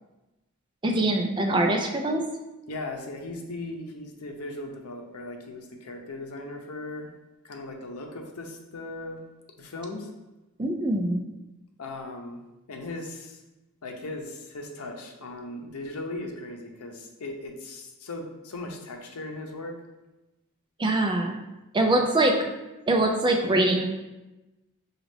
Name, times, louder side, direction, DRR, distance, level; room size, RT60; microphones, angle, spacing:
voice 1, 0.8-2.2 10.6-11.2 20.8-21.4 21.7-22.3 22.9-23.9, right 2 dB, 20° right, 2 dB, 0.4 m, -23 dB
voice 2, 2.7-7.1 7.4-9.2 9.6-10.1 11.8-12.4 12.7-13.4 13.8-19.8 21.9-22.2, left 2 dB, 90° left, 3 dB, 0.7 m, -38 dB
6.1 x 2.4 x 3.3 m, 1.0 s
head